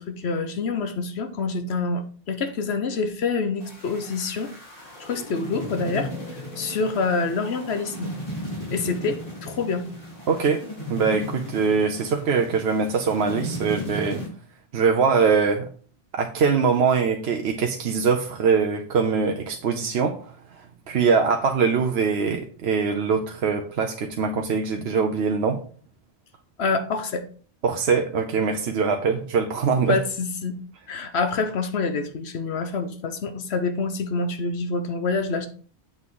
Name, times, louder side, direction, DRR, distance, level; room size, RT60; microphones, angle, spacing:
voice 1, 0.0-4.5 5.0-6.1 6.6-8.1 8.7-9.8 26.6-27.2 29.9-30.6 30.9-35.5, left 4 dB, 75° left, 9 dB, 1.1 m, -26 dB
sound 1, 3.6-14.3, left 1 dB, 55° left, 2.9 m, -36 dB
voice 2, 10.3-10.6 10.9-14.2 14.7-15.7 16.1-20.3 20.9-25.6 27.6-30.0, right 5 dB, 75° right, 4 dB, 1.0 m, -22 dB
7.7 x 6.0 x 3.8 m, 0.44 s
omnidirectional pair, 1.1 m